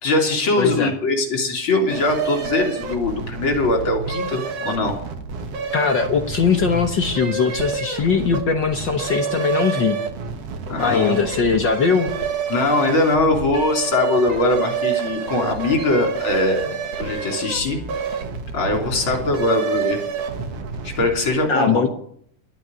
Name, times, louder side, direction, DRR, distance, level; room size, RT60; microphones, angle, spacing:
voice 1, 0.0-4.9 10.7-11.1 12.5-17.8 18.1-18.2 18.5-20.0 20.8-21.9, left 2 dB, 40° left, 3 dB, 3.7 m, -21 dB
voice 2, 0.6-0.9 5.7-10.0 10.8-12.1 21.5-21.9, left 5 dB, 70° left, 5 dB, 1.0 m, -20 dB
sound 1, 1.9-21.3, right 6 dB, 55° right, 2.4 m, -28 dB
12.5 x 9.3 x 9.7 m, 0.65 s
omnidirectional pair, 3.6 m